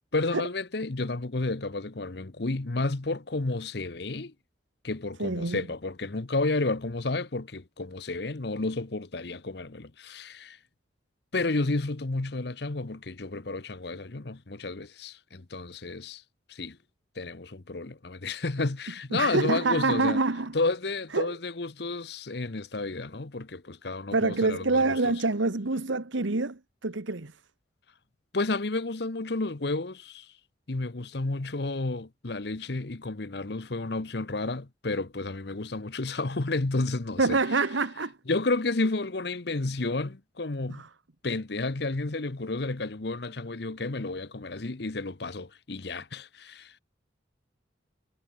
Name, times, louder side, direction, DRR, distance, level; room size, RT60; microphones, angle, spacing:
voice 1, 0.1-4.3 4.8-10.6 11.3-16.2 16.5-16.8 17.2-20.2 20.5-25.1 28.3-30.3 30.7-37.4 38.3-40.8 41.2-46.8, left 3 dB, 60° left, 1.0 m, -31 dB
voice 2, 5.2-5.6 19.1-20.5 21.1-21.3 24.1-27.4 37.2-38.2 40.7-40.9, right 3 dB, 80° right, 1.3 m, -26 dB
head